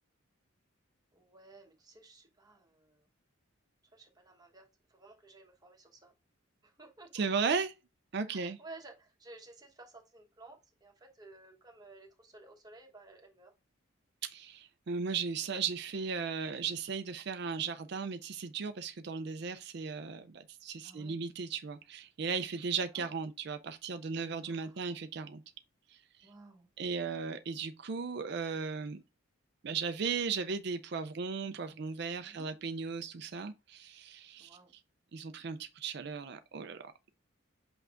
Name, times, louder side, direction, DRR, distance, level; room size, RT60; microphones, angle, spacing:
voice 1, 1.1-3.1 3.9-6.1 6.6-7.3 8.2-13.5 15.5-15.6 20.8-21.2 22.7-23.1 24.3-24.8 26.2-26.7 32.2-32.5 34.4-34.7, right 2 dB, 20° right, 1.1 m, -55 dB
voice 2, 7.1-7.7 8.1-8.6 14.2-25.4 25.9-26.3 26.8-29.0 29.6-34.5 35.1-37.1, right 5 dB, 50° right, 0.4 m, -36 dB
6.9 x 5.6 x 2.5 m
head